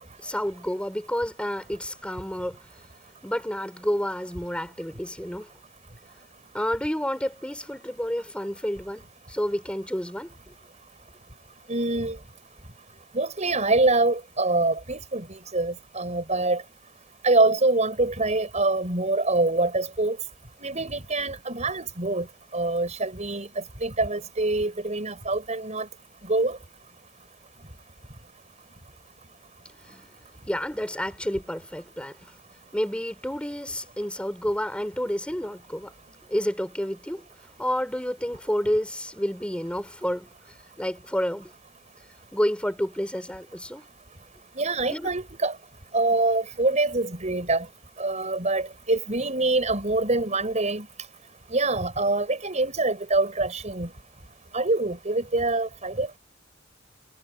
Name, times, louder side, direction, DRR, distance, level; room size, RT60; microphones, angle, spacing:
voice 1, 0.2-2.6 3.2-5.5 6.5-9.0 9.3-10.3 29.9-30.0 30.5-32.2 32.7-35.9 36.3-37.2 37.6-40.3 40.8-41.5 42.3-43.8 44.9-45.1, equal, 5° left, 4.2 m, -29 dB
voice 2, 11.7-12.2 13.1-16.6 17.2-20.2 20.6-22.3 22.5-23.5 23.8-25.9 26.3-26.6 44.6-45.5 45.9-47.7 48.0-50.9 51.5-53.9 54.5-56.2, right 2 dB, 40° right, 5.5 m, -25 dB
head